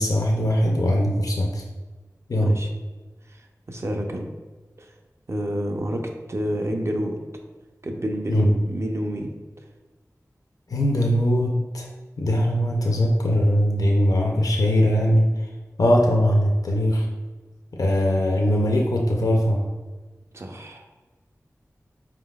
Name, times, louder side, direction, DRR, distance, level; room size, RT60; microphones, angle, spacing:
voice 1, 0.0-1.6 2.3-2.5 8.3-8.5 10.7-11.9 12.2-15.5 15.8-17.1 17.8-19.7, equal, 80° left, 0 dB, 0.5 m, -20 dB
voice 2, 2.4-2.7 3.3-3.4 3.7-4.3 4.8-4.9 5.3-7.2 7.8-9.3 20.3-20.9, equal, 50° right, 3 dB, 0.6 m, -29 dB
4.6 x 3.7 x 2.3 m, 1.3 s
wide cardioid pair, 50°, 6 cm